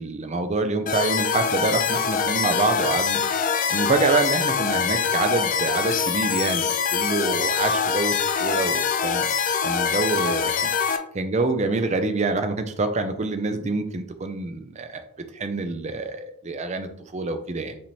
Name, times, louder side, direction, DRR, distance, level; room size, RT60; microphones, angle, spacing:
voice 1, 0.0-3.4 3.7-9.3 9.6-15.0 15.3-17.8, right 3 dB, 30° right, 8 dB, 0.5 m, -26 dB
sound 1, 0.9-11.0, left 6 dB, 35° left, 0.3 m, -24 dB
5.3 x 3.5 x 2.7 m, 0.69 s
head